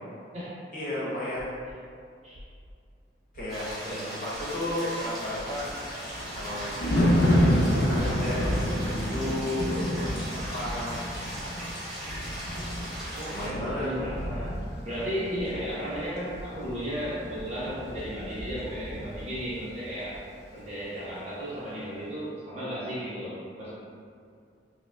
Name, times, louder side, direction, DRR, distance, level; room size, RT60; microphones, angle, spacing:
voice 1, 0.7-1.5 3.3-5.7 6.3-7.4 7.7-11.0 11.4-11.9 13.3-13.9, left 1 dB, 50° left, -9 dB, 1.0 m, -34 dB
sound 1, 1.4-1.7 2.3-2.7 3.3-3.7 4.3-4.7 5.3-5.7 6.3-6.7 7.3-7.7 8.3-8.7 9.3-9.7 10.3-10.7 11.3-11.7 12.3-12.7 13.3-13.7 14.3-14.7 15.3-15.7 16.3-16.7 17.3-17.7 18.2-18.3, left 1 dB, 80° right, 0.4 m, -47 dB
sound 2, 3.5-13.5, equal, ahead, 1.3 m, -39 dB
Thunder, 5.0-19.6 19.9-20.2, equal, 80° left, 0.7 m, -29 dB
voice 2, 13.1-20.2 20.5-23.7, equal, 40° right, -9 dB, 1.0 m, -34 dB
4.9 x 2.2 x 2.3 m, 2.3 s
head